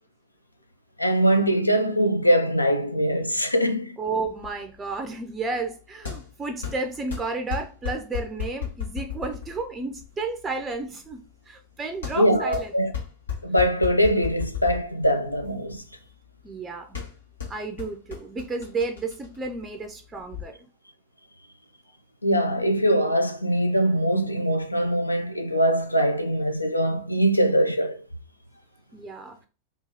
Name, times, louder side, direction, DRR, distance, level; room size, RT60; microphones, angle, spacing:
voice 1, 1.0-4.0 12.2-12.9 13.4-15.8 22.2-28.0, equal, 85° left, 0.4 m, -22 dB
voice 2, 4.0-12.7 16.4-17.0 17.5-20.6 28.9-29.5, right 3 dB, 15° right, 0.4 m, -32 dB
sound 1, 4.3-20.4, left 8 dB, 70° left, 0.8 m, -37 dB
2.7 x 2.4 x 3.9 m
figure-of-eight pair, 90°, 0 cm